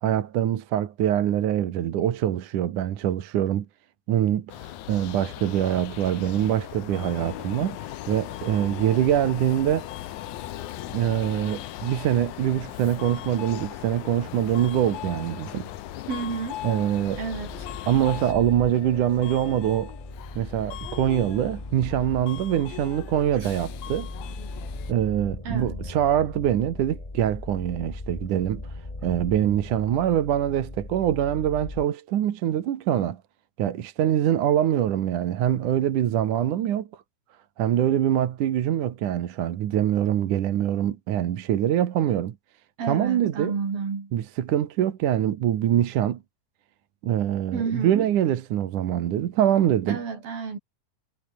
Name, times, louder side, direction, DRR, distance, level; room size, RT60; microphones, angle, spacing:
voice 1, 0.0-3.7 4.1-7.8 8.1-9.9 10.9-15.7 16.6-17.2 17.8-19.9 20.4-24.1 24.9-28.6 29.0-33.2 33.6-36.9 37.6-42.4 42.9-43.5 44.1-46.2 47.0-50.0, right 11 dB, 65° right, 2.9 m, -24 dB
sound 1, 4.5-18.3, left 14 dB, 70° left, 2.2 m, -40 dB
Subway metro underground, 6.9-24.9, left 13 dB, 85° left, 3.1 m, -41 dB
voice 2, 16.1-16.6 17.2-17.5 23.4-23.5 25.4-25.9 42.8-44.1 47.5-48.1 49.9-50.6, right 5 dB, 80° right, 6.8 m, -30 dB
sound 2, 17.0-31.9, left 2 dB, 15° left, 1.6 m, -38 dB
omnidirectional pair, 4.1 m